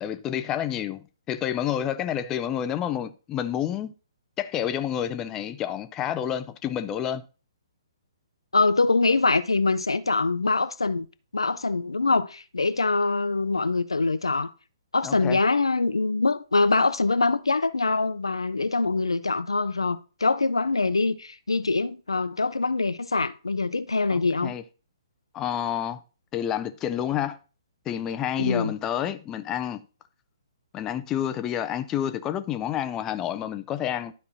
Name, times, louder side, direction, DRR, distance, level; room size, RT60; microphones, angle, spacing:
voice 1, 0.0-3.9 4.4-7.2 15.0-15.4 24.1-24.6 25.3-26.0 26.3-27.4 27.9-29.8 30.7-34.1, left 10 dB, 20° left, 0.4 m, -29 dB
voice 2, 8.5-11.1 11.3-14.5 14.9-24.5 28.4-28.7, left 3 dB, 75° left, 0.4 m, -24 dB
12.0 x 4.2 x 2.8 m
figure-of-eight pair, 125°, 3 cm